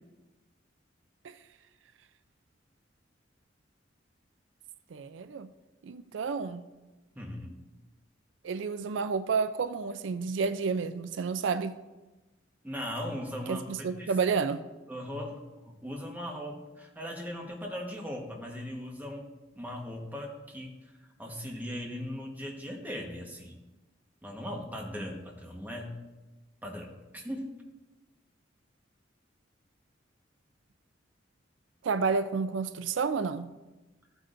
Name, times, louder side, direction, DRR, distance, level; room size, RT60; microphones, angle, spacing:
voice 1, 4.9-5.5 5.8-6.7 8.4-11.8 13.5-14.6 31.8-33.5, right 5 dB, 85° right, 0.4 m, -30 dB
voice 2, 7.1-7.6 12.6-13.7 14.0-14.1 14.9-15.4 15.6-19.3 19.6-20.8 21.2-23.5 24.2-25.9 26.6-27.5, equal, 10° right, 1.3 m, -38 dB
14.0 x 8.0 x 2.6 m
head